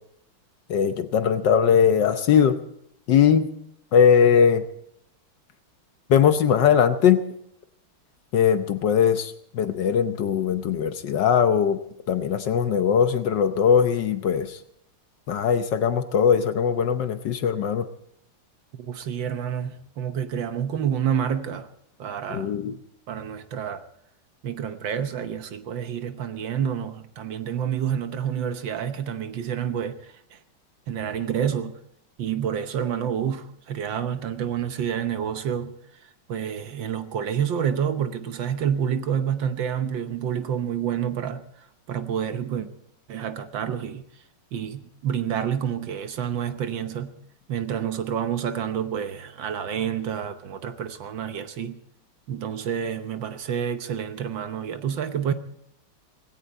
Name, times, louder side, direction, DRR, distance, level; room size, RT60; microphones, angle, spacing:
voice 1, 0.7-2.6 3.1-3.5 3.9-4.6 6.1-7.2 8.3-11.8 12.1-14.6 15.3-17.9 22.3-22.8, left 7 dB, 65° left, 1.4 m, -20 dB
voice 2, 18.8-21.7 22.0-22.5 23.1-23.8 24.4-30.0 30.9-31.8 32.2-35.7 36.3-41.4 41.9-42.7 43.1-44.0 44.5-47.2 47.5-51.8 52.3-55.3, right 8 dB, 65° right, 1.6 m, -28 dB
18.0 x 17.0 x 4.1 m
omnidirectional pair, 2.3 m